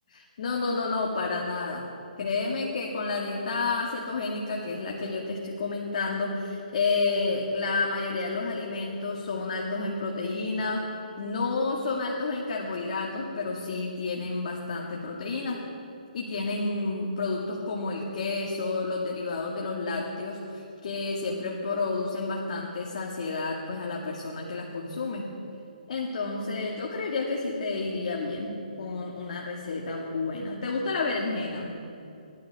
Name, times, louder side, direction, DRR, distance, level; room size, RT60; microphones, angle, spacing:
voice 1, 0.1-1.9 2.2-15.6 16.1-25.3 25.9-31.7, left 3 dB, 50° left, -1 dB, 2.0 m, -30 dB
20.5 x 12.5 x 3.6 m, 2.6 s
hypercardioid pair, 160°, 5 cm